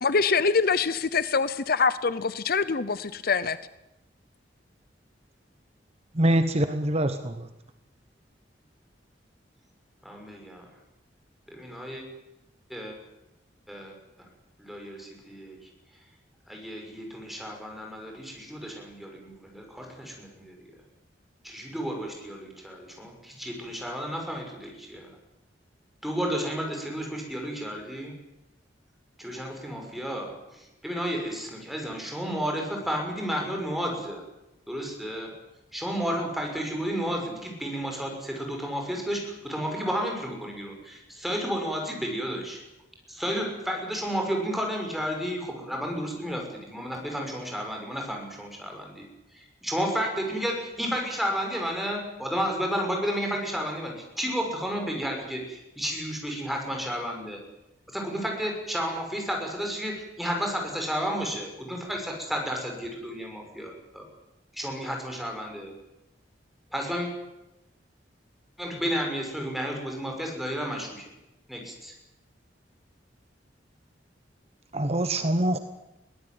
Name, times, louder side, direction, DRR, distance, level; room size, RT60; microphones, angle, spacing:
voice 1, 0.0-3.6, left 5 dB, 55° left, 15 dB, 0.8 m, -24 dB
voice 2, 6.1-7.5 74.7-75.6, right 1 dB, 35° right, 9 dB, 1.1 m, -24 dB
voice 3, 10.0-10.7 11.5-12.0 12.7-12.9 13.7-14.3 14.6-15.6 16.5-20.7 21.4-25.1 26.0-28.1 29.2-34.2 34.7-35.3 35.7-42.6 43.1-49.0 49.3-57.4 57.9-64.0 64.5-65.7 66.7-67.1 68.6-71.0 71.5-71.7, equal, ahead, 1 dB, 6.1 m, -32 dB
22.5 x 18.0 x 9.5 m, 0.91 s
head